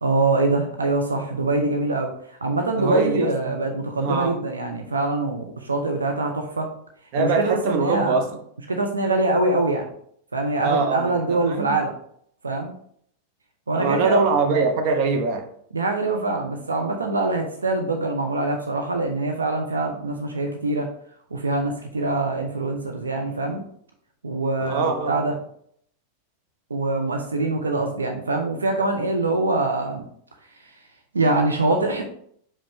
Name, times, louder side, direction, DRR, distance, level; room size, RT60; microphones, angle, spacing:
voice 1, 0.0-2.1 2.4-6.7 7.2-8.2 8.7-9.9 10.3-11.9 12.4-12.7 13.7-14.2 15.7-20.9 21.3-23.6 24.2-25.3 26.7-30.1 31.1-32.0, right 2 dB, 75° right, 0.8 m, -24 dB
voice 2, 2.8-3.5 4.0-4.4 7.1-8.3 10.6-11.1 11.4-11.8 13.7-15.5 24.6-25.1, right 4 dB, 45° right, 1.0 m, -23 dB
5.6 x 5.1 x 3.5 m
figure-of-eight pair, 90°, 0 cm